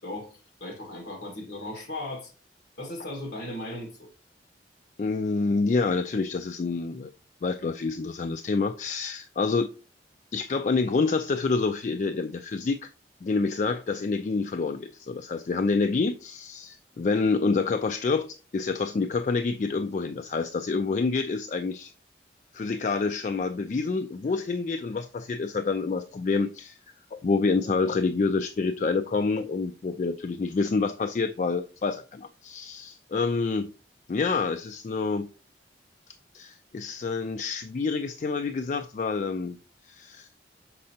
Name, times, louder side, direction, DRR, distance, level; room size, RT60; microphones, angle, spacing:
voice 1, 0.0-2.3 2.8-4.1, left 1 dB, 70° left, 1.6 m, -37 dB
voice 2, 5.0-7.1 7.4-9.7 10.3-12.9 13.2-21.9 22.5-26.8 27.1-33.7 34.1-35.3 36.3-39.6 39.9-40.3, left 4 dB, 40° left, 0.3 m, -27 dB
6.5 x 5.4 x 2.8 m
head